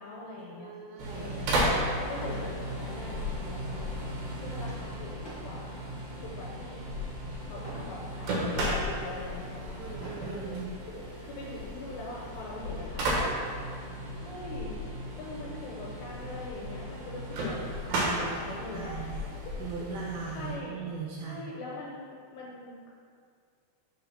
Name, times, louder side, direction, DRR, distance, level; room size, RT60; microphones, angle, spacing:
voice 1, 0.0-0.7 1.1-1.5 2.0-3.9 4.4-5.8 6.2-6.9 7.4-9.8 10.2-10.6 10.9-13.3 14.2-14.8 15.2-17.6 18.2-19.2 19.5-19.9 20.3-20.7 21.2-22.9, left 2 dB, 80° left, -4 dB, 3.0 m, -42 dB
voice 2, 0.6-1.4 9.8-10.7 17.9-19.2 19.6-21.6, right 5 dB, 90° right, -2 dB, 2.2 m, -39 dB
sound 1, 1.0-20.6, equal, 65° right, 2.9 m, -34 dB
sound 2, 2.2-2.6 3.0-3.3 5.2-5.6 6.2-6.6 7.6-8.0 8.7-8.8 9.9-10.4 11.4-11.6 11.9-12.0 12.4-13.6, equal, 60° left, 0.9 m, -46 dB
6.9 x 3.9 x 5.6 m, 2.2 s
omnidirectional pair, 5.0 m